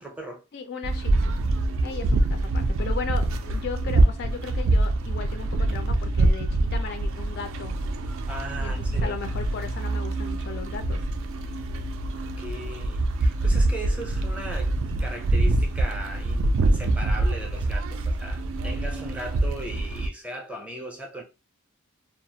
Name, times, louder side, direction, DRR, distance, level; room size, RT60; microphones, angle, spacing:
voice 1, 0.0-0.4 8.3-9.2 12.4-21.2, right 1 dB, 5° right, 0.5 m, -38 dB
voice 2, 0.5-1.4 1.8-7.7 8.6-11.0, left 6 dB, 50° left, 0.3 m, -36 dB
sound 1, 0.8-20.1, right 2 dB, 60° right, 0.3 m, -25 dB
2.3 x 2.0 x 2.7 m
head